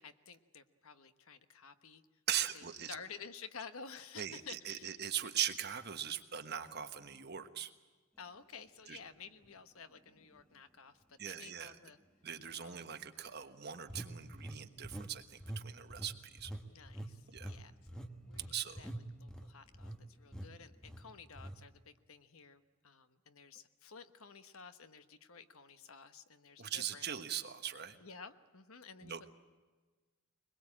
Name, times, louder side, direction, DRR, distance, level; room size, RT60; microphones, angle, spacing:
voice 1, 0.0-2.0 2.5-5.0 8.2-12.0 12.6-12.9 16.7-27.1 28.0-29.3, left 5 dB, 70° left, 10 dB, 1.2 m, -53 dB
voice 2, 2.3-2.9 4.2-7.7 8.9-9.0 11.2-11.7 12.2-16.5 17.3-17.5 18.5-18.8 26.6-28.0 29.0-29.3, right 9 dB, 45° right, 8 dB, 1.3 m, -40 dB
sound 1, 9.4-9.5 10.2-10.3 13.9-15.1 15.4-15.6 15.9-20.0 20.3-20.5 20.8-21.0 21.4-21.6, right 1 dB, 5° left, 1.2 m, -45 dB
22.5 x 21.5 x 8.7 m, 1.3 s
head